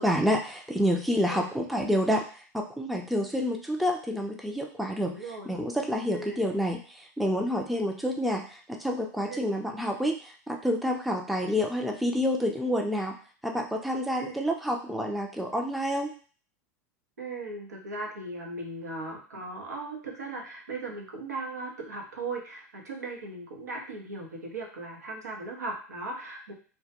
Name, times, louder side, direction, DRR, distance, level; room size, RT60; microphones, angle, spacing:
voice 1, 0.0-2.2 2.5-5.2 5.5-6.8 7.2-13.1 13.4-16.1, equal, ahead, 2 dB, 0.4 m, -28 dB
voice 2, 5.1-5.5 6.1-6.5 9.3-9.4 14.2-14.4 17.2-26.5, right 2 dB, 85° right, 0 dB, 0.6 m, -38 dB
2.2 x 2.1 x 2.8 m, 0.40 s
hypercardioid pair, 90°, 9 cm